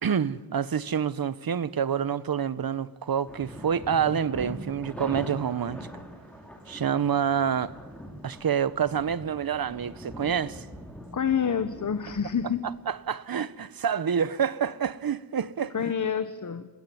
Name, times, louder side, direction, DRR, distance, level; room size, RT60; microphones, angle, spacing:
voice 1, 0.0-5.9 6.7-7.7 8.2-10.7 12.9-15.7, right 7 dB, 55° right, 1.1 m, -27 dB
sound 1, 3.3-12.9, equal, 5° left, 4.9 m, -42 dB
voice 2, 11.1-12.6 15.7-16.7, left 7 dB, 45° left, 1.2 m, -27 dB
28.0 x 21.0 x 9.5 m
wide cardioid pair, 110°, 41 cm